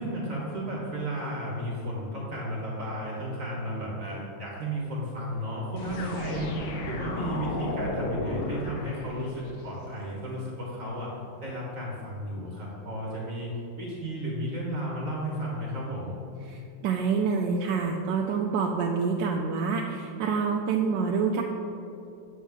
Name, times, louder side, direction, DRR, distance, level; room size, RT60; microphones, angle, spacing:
voice 1, 0.0-13.5 13.8-16.1, equal, 45° right, -3 dB, 1.6 m, -33 dB
sound 1, 5.8-9.7, left 2 dB, 70° left, 1.5 m, -33 dB
voice 2, 16.8-21.4, right 5 dB, 75° right, 0 dB, 1.2 m, -27 dB
8.6 x 7.3 x 3.5 m, 2.9 s
omnidirectional pair, 2.1 m